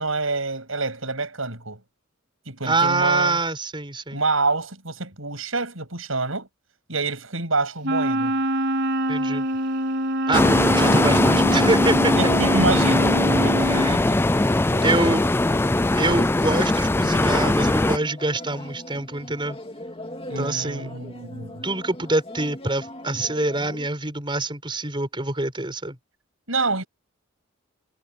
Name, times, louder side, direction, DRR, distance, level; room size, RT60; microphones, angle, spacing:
voice 1, 0.0-1.8 2.5-3.4 4.1-6.5 6.9-8.4 12.1-14.2 14.7-14.9 20.3-21.6 26.5-26.9, right 3 dB, 75° right, 7.6 m, -27 dB
voice 2, 2.6-4.2 9.1-9.4 10.3-12.1 13.7-14.0 14.5-15.2 15.9-19.6 20.4-20.9 21.6-26.0, right 2 dB, 25° right, 4.9 m, -25 dB
Wind instrument woodwind instrument, 7.8-14.0, right 1 dB, 60° right, 4.5 m, -25 dB
sound 1, 10.3-18.0, left 2 dB, 10° left, 0.3 m, -20 dB
sound 2, 10.8-23.9, left 1 dB, 25° left, 2.5 m, -39 dB
head